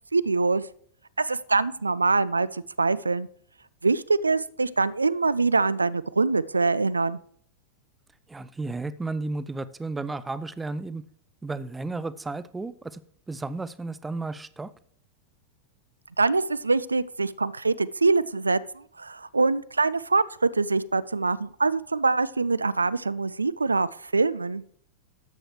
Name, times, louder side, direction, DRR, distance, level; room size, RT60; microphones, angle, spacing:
voice 1, 0.1-0.6 1.2-3.3 3.8-7.2 16.2-24.6, right 3 dB, 80° right, 18 dB, 0.3 m, -24 dB
voice 2, 8.3-11.0 11.4-13.0 13.3-14.7, right 3 dB, 10° right, 16 dB, 0.5 m, -33 dB
12.5 x 7.7 x 3.1 m, 0.62 s
figure-of-eight pair, 90°, 0 cm